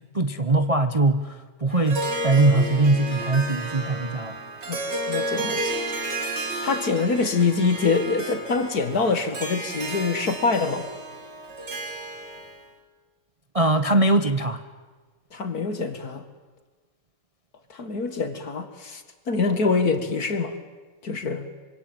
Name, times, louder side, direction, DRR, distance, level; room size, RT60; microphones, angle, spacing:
voice 1, 0.1-4.4 13.5-14.6, right 2 dB, 25° right, 9 dB, 0.9 m, -21 dB
Harp, 1.7-12.6, right 1 dB, 70° right, 3.5 m, -32 dB
voice 2, 4.7-5.8 6.6-10.9 15.3-16.3 17.7-20.5 21.0-21.5, left 4 dB, 55° left, 9 dB, 2.5 m, -25 dB
25.5 x 25.5 x 9.0 m, 1.3 s
omnidirectional pair, 2.0 m